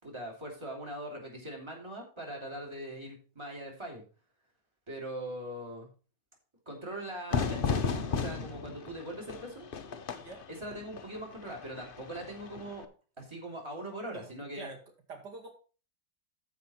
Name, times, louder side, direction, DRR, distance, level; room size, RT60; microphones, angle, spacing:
voice 1, 0.0-4.0 4.9-5.9 6.7-9.7 10.5-12.9 13.2-14.7, right 1 dB, 15° right, -1 dB, 3.0 m, -41 dB
Fire / Fireworks, 7.3-12.8, left 5 dB, 45° left, 0.8 m, -35 dB
voice 2, 15.1-15.5, right 3 dB, 90° right, 1 dB, 2.9 m, -44 dB
14.0 x 5.2 x 4.3 m, 0.36 s
omnidirectional pair, 1.8 m